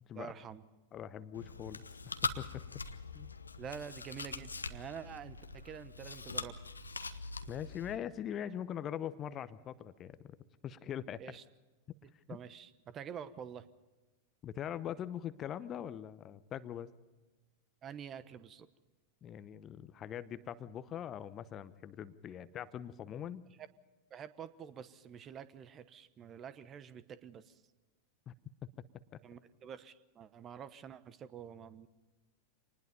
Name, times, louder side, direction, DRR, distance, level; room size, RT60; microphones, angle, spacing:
voice 1, 0.1-0.6 3.6-6.6 11.2-11.4 12.0-13.7 17.8-18.7 24.1-27.6 29.2-31.9, right 8 dB, 30° right, 15 dB, 1.1 m, -47 dB
voice 2, 0.9-1.8 2.2-2.6 3.1-3.3 7.5-10.4 10.6-11.2 12.3-12.4 14.4-16.9 19.2-23.5 28.3-28.4 28.6-28.7 29.1-29.2, left 10 dB, 30° left, 15 dB, 0.8 m, -42 dB
Chewing mastication, 1.3-8.0, left 3 dB, 80° left, 1.0 m, -42 dB
26.5 x 20.0 x 5.3 m, 1.2 s
figure-of-eight pair, 90°, 0 cm